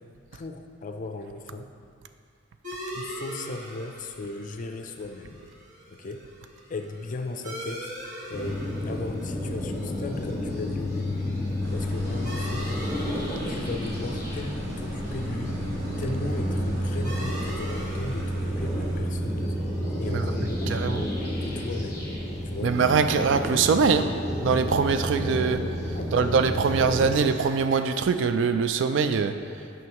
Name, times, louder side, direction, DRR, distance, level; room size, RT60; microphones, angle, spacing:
voice 1, 0.3-1.7 2.9-5.4 5.9-6.2 6.7-7.9 8.3-12.7 13.4-15.6 16.0-19.6 20.0-20.7 21.4-22.1 22.4-22.8 23.1-23.3 25.9-26.3, left 3 dB, 40° left, 6 dB, 0.4 m, -37 dB
sound 1, 2.6-21.8, equal, 40° right, 1.4 m, -43 dB
sound 2, 8.3-27.1, equal, 15° left, 1.2 m, -30 dB
sound 3, 11.6-19.0, equal, 85° right, 0.9 m, -40 dB
voice 2, 20.7-21.0 22.6-24.1 24.4-25.6 26.1-29.3, right 5 dB, 65° right, 9 dB, 0.3 m, -23 dB
9.4 x 5.4 x 2.9 m, 2.4 s
head